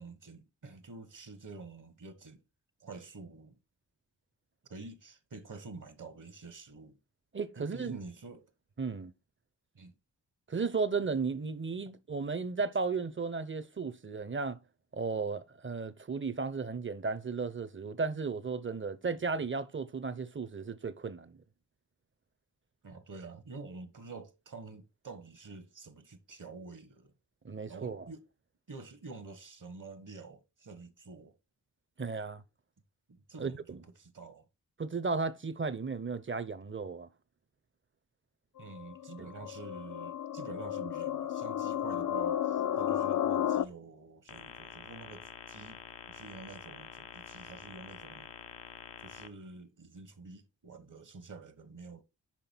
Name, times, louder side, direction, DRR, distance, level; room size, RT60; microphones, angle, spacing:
voice 1, 0.0-2.4 2.8-3.6 4.7-7.0 7.6-8.5 9.7-9.9 22.8-27.1 27.7-28.3 28.7-31.4 33.1-34.5 38.6-45.8 46.1-48.3 49.0-52.0, right 4 dB, 50° right, 1.2 m, -48 dB
voice 2, 7.3-8.0 8.8-9.1 10.5-14.6 14.9-21.4 27.4-28.0 32.0-32.4 33.4-33.8 34.8-37.1, right 4 dB, 30° right, 0.8 m, -34 dB
sound 1, 38.6-43.6, left 10 dB, 50° left, 0.6 m, -33 dB
sound 2, 44.3-49.3, left 8 dB, 80° left, 0.9 m, -48 dB
5.9 x 5.0 x 4.5 m
cardioid pair, 50°, 41 cm